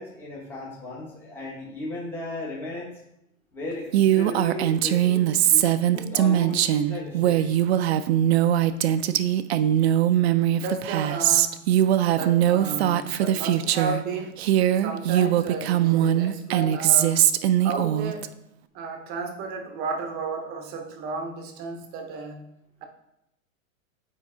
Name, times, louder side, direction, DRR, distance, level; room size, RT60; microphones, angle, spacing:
voice 1, 0.0-2.9 3.5-7.5 10.1-10.2, left 1 dB, 5° left, -4 dB, 0.9 m, -36 dB
Female speech woman speaking, 3.9-14.0 14.4-18.3, right 11 dB, 55° right, 0.4 m, -21 dB
voice 2, 10.5-11.6 12.1-14.5 14.8-17.2 17.6-18.3 18.7-22.4, right 4 dB, 25° right, 5 dB, 0.7 m, -33 dB
7.2 x 4.7 x 4.3 m, 0.81 s
supercardioid pair, 155°, 41 cm